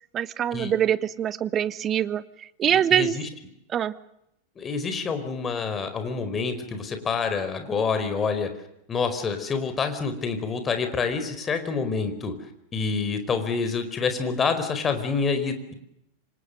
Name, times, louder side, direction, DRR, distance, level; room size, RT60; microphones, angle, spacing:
voice 1, 0.1-3.1 3.7-3.9, right 10 dB, 25° right, 16 dB, 1.2 m, -24 dB
voice 2, 2.7-3.3 4.6-8.5 8.9-12.3 12.7-15.7, left 5 dB, 20° left, 8 dB, 4.7 m, -27 dB
28.0 x 26.0 x 6.7 m, 0.79 s
figure-of-eight pair, 90°, 0 cm